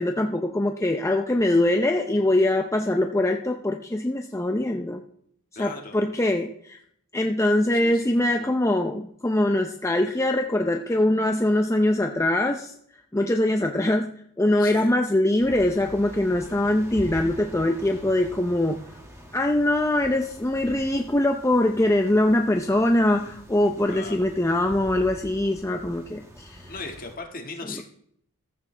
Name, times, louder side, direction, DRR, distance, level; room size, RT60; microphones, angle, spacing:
voice 1, 0.0-5.0 5.6-6.8 7.1-12.7 13.1-14.1 14.4-18.8 19.3-26.7 27.8-27.9, left 1 dB, 15° left, 4 dB, 0.5 m, -23 dB
voice 2, 5.5-6.0 7.7-8.5 14.6-14.9 23.9-24.2 26.7-27.8, left 3 dB, 40° left, 3 dB, 1.7 m, -38 dB
sound 1, 15.4-27.2, equal, 15° right, 1.9 m, -44 dB
14.5 x 13.5 x 3.3 m, 0.69 s
head